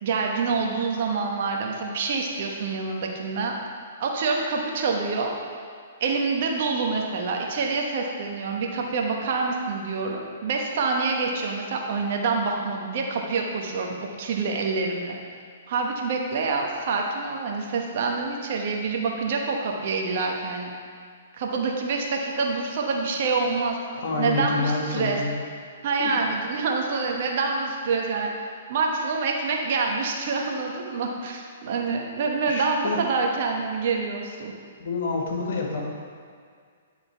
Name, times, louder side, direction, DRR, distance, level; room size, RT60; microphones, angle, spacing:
voice 1, 0.0-3.5 4.0-5.3 6.0-15.2 15.7-20.7 21.3-23.8 24.2-25.2 25.8-28.3 28.7-34.6, right 4 dB, 55° right, 0 dB, 1.2 m, -26 dB
voice 2, 23.9-25.4 26.0-26.3 32.5-33.0 34.8-35.8, left 3 dB, 65° left, -1 dB, 1.6 m, -28 dB
10.5 x 4.0 x 4.5 m, 2.1 s
hypercardioid pair, 130°, 0 cm